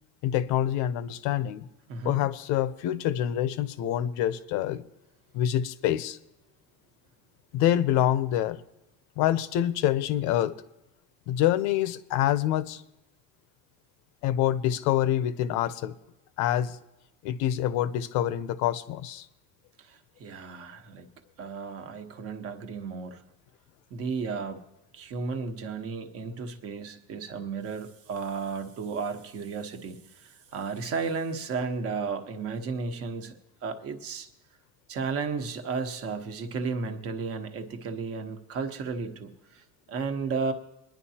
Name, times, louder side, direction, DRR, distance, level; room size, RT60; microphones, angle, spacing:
voice 1, 0.2-1.7 2.0-4.9 5.3-6.2 7.5-8.6 9.2-10.6 11.3-12.8 14.2-16.0 16.4-16.8 17.2-19.3, left 12 dB, 60° left, 0.6 m, -26 dB
voice 2, 1.9-2.2 19.9-21.1 21.4-23.2 23.9-24.6 24.9-33.3 33.6-34.3 34.9-39.6 39.9-40.5, right 5 dB, 45° right, 1.2 m, -33 dB
22.5 x 10.5 x 2.9 m
cardioid pair, 155°, 32 cm